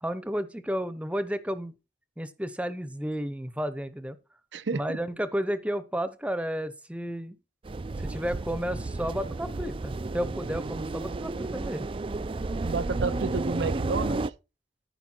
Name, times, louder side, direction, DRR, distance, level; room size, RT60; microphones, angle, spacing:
voice 1, 0.0-1.7 2.2-4.2 4.7-7.4 8.0-11.9, equal, 5° right, 0.8 m, -32 dB
voice 2, 4.5-5.0 12.6-14.3, right 4 dB, 85° right, 0.6 m, -31 dB
sound 1, 7.6-14.3, right 2 dB, 30° right, 0.4 m, -32 dB
13.5 x 5.3 x 4.4 m
head